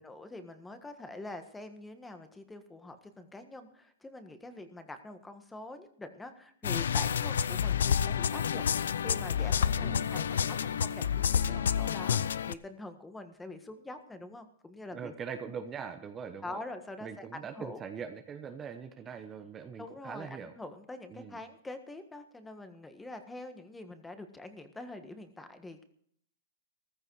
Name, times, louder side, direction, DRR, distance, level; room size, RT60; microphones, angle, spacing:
voice 1, 0.0-8.6 9.0-15.1 16.4-17.3 17.5-17.8 19.8-25.8, left 2 dB, 10° left, 8 dB, 1.5 m, -45 dB
sound 1, 6.6-12.5, left 8 dB, 90° left, 0.6 m, -29 dB
voice 2, 9.8-10.4 14.9-16.6 17.0-20.5 21.1-21.4, right 6 dB, 20° right, 7 dB, 1.0 m, -42 dB
15.0 x 13.5 x 4.8 m, 0.64 s
hypercardioid pair, 140°, 0 cm